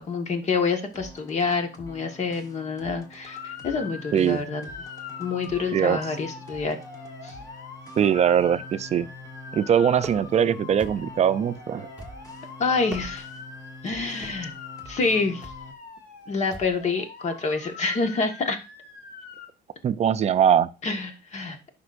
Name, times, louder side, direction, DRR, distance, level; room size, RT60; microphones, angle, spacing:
voice 1, 0.0-4.7 5.2-6.8 7.2-7.4 12.6-13.3 13.8-14.5 14.8-15.5 16.3-18.6 20.8-21.6, left 4 dB, 45° left, 1.6 m, -27 dB
sound 1, 0.9-15.7, left 2 dB, 20° left, 1.2 m, -46 dB
Motor vehicle (road) / Siren, 3.3-19.5, left 5 dB, 70° left, 1.9 m, -43 dB
voice 2, 4.1-4.4 5.7-6.0 8.0-9.1 9.5-11.9 19.8-20.7, right 8 dB, 40° right, 0.5 m, -21 dB
sound 2, 10.0-10.4 10.8-11.3 12.0-12.4 12.8-13.4 14.2-14.5 15.4-15.7 16.5-16.8, right 2 dB, 5° right, 1.4 m, -41 dB
11.0 x 5.3 x 2.6 m
cardioid pair, 110°, 17 cm